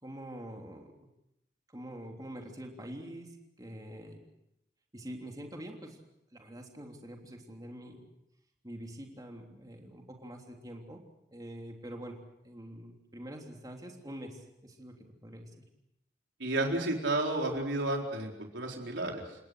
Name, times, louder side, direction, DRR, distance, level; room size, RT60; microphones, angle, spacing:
voice 1, 0.0-0.9 1.7-4.2 4.9-6.0 6.3-8.0 8.6-11.0 11.3-14.9 15.2-15.5, right 1 dB, 20° right, 1 dB, 3.4 m, -45 dB
voice 2, 16.4-19.4, right 2 dB, 80° right, 1 dB, 4.3 m, -32 dB
30.0 x 18.5 x 6.4 m, 0.83 s
head